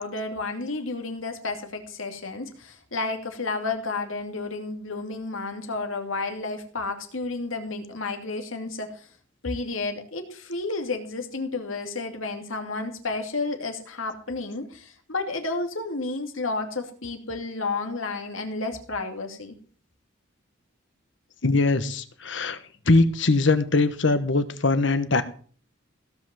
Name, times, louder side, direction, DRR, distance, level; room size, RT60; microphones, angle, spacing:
voice 1, 0.0-9.1 9.4-19.5, left 3 dB, 85° left, 5 dB, 2.5 m, -31 dB
voice 2, 21.4-22.6 22.9-25.2, left 3 dB, 65° left, 11 dB, 1.3 m, -21 dB
16.5 x 5.6 x 7.6 m, 0.43 s
head